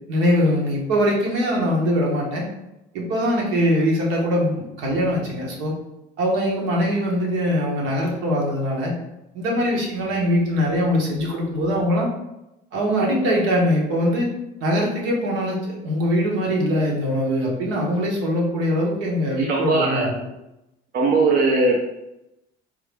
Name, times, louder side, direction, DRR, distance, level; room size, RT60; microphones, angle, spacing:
voice 1, 0.1-2.5 2.9-5.8 6.2-8.9 9.3-12.1 12.7-14.3 14.6-20.1, equal, 85° right, -2 dB, 1.3 m, -22 dB
voice 2, 19.4-20.1 20.9-21.7, right 3 dB, 50° right, -1 dB, 0.7 m, -19 dB
3.8 x 2.7 x 3.3 m, 0.91 s
cardioid pair, 120°, 20 cm